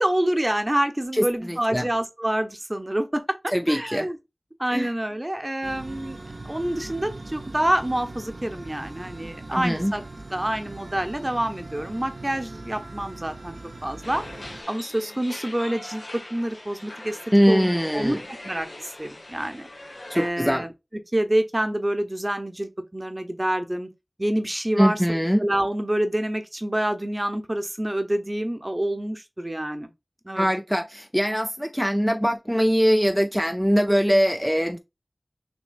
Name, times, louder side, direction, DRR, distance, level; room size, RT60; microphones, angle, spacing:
voice 1, 0.0-4.2 4.6-6.2 6.4-10.0 10.3-13.6 13.8-14.2 14.7-17.2 17.5-17.6 17.9-18.2 18.4-19.7 20.1-20.7 21.1-23.9 24.2-29.9 30.2-30.5, right 1 dB, 30° right, 0.9 m, -27 dB
voice 2, 1.1-1.9 3.5-4.1 4.7-4.9 9.5-9.9 17.3-18.2 20.1-20.6 24.8-25.5 30.4-34.8, equal, ahead, 0.4 m, -22 dB
sound 1, 5.6-14.6, right 2 dB, 70° right, 0.6 m, -40 dB
sound 2, 14.0-20.3, left 1 dB, 85° left, 1.3 m, -41 dB
6.3 x 3.1 x 2.5 m
wide cardioid pair, 50°, 0 cm